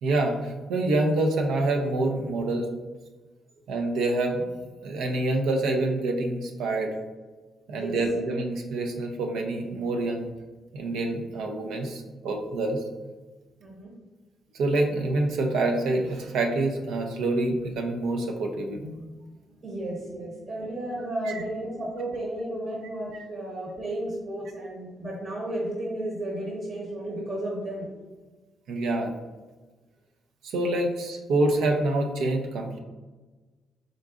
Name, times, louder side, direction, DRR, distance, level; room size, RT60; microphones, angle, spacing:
voice 1, 0.0-2.7 3.7-4.4 4.8-6.9 7.7-10.3 10.7-12.8 14.5-19.0 21.2-21.4 23.1-23.2 28.7-29.1 30.4-32.8, right 2 dB, 85° right, 2 dB, 0.5 m, -26 dB
voice 2, 13.6-13.9 19.5-27.9, right 1 dB, 50° right, -4 dB, 1.0 m, -33 dB
3.7 x 3.7 x 2.4 m, 1.3 s
cardioid pair, 90°, 0 cm